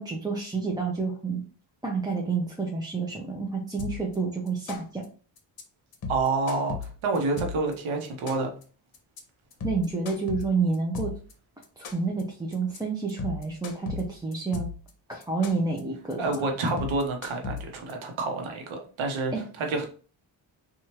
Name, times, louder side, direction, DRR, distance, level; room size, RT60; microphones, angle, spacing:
voice 1, 0.0-1.4 1.8-5.0 9.6-11.2 11.8-14.7 15.1-16.2 19.3-19.4, right 4 dB, 10° right, -1 dB, 0.5 m, -29 dB
sound 1, 3.8-4.2 4.5-5.0 5.4-5.6 5.9-7.7 8.0-8.6 8.9-9.2 9.5-11.3 11.6-12.2 12.5-12.8 13.1-14.9 15.2-15.8 16.1-16.4 16.7-17.9, left 5 dB, 50° left, 0.8 m, -36 dB
voice 2, 6.1-8.5 16.2-19.9, right 3 dB, 85° right, 3 dB, 0.8 m, -28 dB
2.9 x 2.4 x 2.9 m, 0.39 s
cardioid pair, 80°, 46 cm